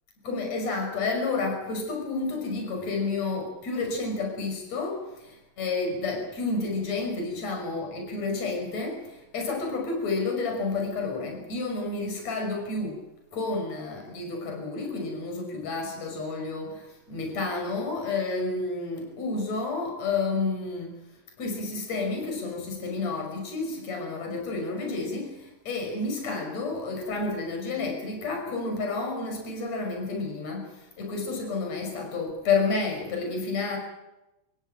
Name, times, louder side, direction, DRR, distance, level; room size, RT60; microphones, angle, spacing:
voice 1, 0.2-13.0 13.3-21.0 21.4-33.8, left 3 dB, 30° left, 2 dB, 6.5 m, -30 dB
27.5 x 16.0 x 9.0 m, 0.98 s
omnidirectional pair, 6.0 m